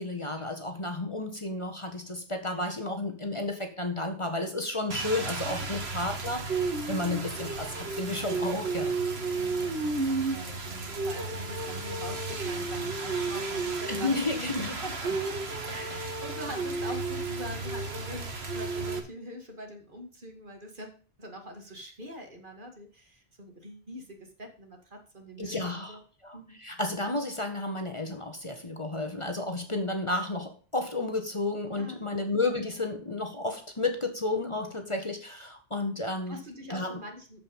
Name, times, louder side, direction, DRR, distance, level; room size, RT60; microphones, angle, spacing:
voice 1, 0.0-8.9 13.9-14.8 16.5-16.6 25.4-26.0 26.2-36.4 36.7-37.0, left 2 dB, 30° left, 5 dB, 1.5 m, -32 dB
Rain, 4.9-19.0, right 3 dB, 75° right, 1.8 m, -32 dB
voice 2, 5.4-5.8 9.1-20.9 21.2-26.0 26.3-26.6 31.8-32.1 36.3-37.4, equal, 50° right, 4 dB, 2.4 m, -44 dB
14.0 x 5.3 x 5.4 m, 0.39 s
omnidirectional pair, 1.1 m